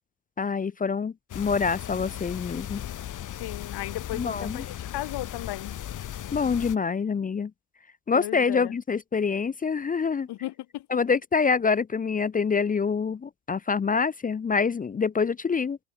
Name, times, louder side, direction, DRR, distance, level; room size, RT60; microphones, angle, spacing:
voice 1, 0.4-2.8 4.1-4.6 6.3-7.5 8.1-10.3 10.9-15.8, left 5 dB, 20° left, 0.6 m, -26 dB
sound 1, 1.3-6.8, left 11 dB, 40° left, 1.7 m, -37 dB
voice 2, 3.4-5.8 8.1-8.7 10.3-11.2, left 15 dB, 55° left, 4.4 m, -35 dB
hypercardioid pair, 80°, 46 cm